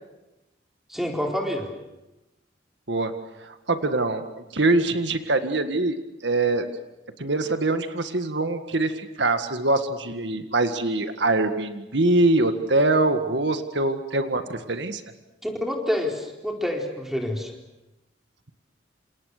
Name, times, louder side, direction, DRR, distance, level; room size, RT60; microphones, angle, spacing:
voice 1, 0.9-1.7 15.4-17.5, left 1 dB, ahead, 1 dB, 4.2 m, -27 dB
voice 2, 3.4-4.3 4.5-6.7 7.2-15.0, right 2 dB, 75° right, 8 dB, 1.9 m, -23 dB
28.0 x 28.0 x 6.7 m, 0.98 s
head